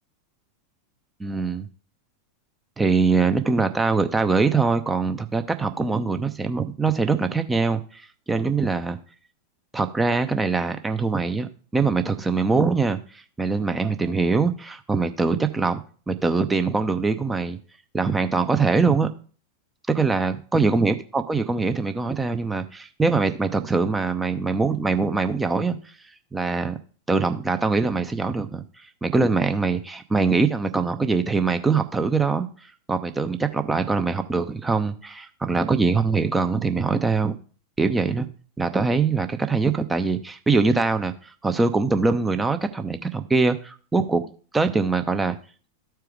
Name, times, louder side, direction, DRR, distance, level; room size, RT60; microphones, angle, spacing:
voice 1, 1.2-1.7 2.8-8.0 8.3-9.0 9.7-15.8 16.1-17.6 17.9-19.1 19.9-25.8 26.3-26.8 27.1-28.6 29.0-32.5 32.9-37.4 37.8-38.3 38.6-45.4, right 4 dB, 10° right, 8 dB, 0.7 m, -23 dB
13.5 x 4.5 x 3.5 m, 0.41 s
figure-of-eight pair, 90°, 0 cm